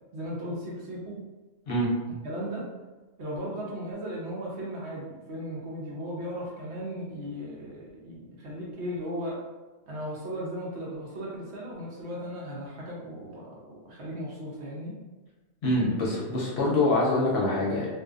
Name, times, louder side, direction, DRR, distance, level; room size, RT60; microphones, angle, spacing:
voice 1, 0.1-1.2 2.2-2.7 3.2-9.4 9.9-15.0, equal, 65° right, -4 dB, 0.9 m, -36 dB
voice 2, 15.6-17.9, left 2 dB, 65° left, -4 dB, 0.8 m, -25 dB
2.6 x 2.1 x 2.3 m, 1.2 s
omnidirectional pair, 1.3 m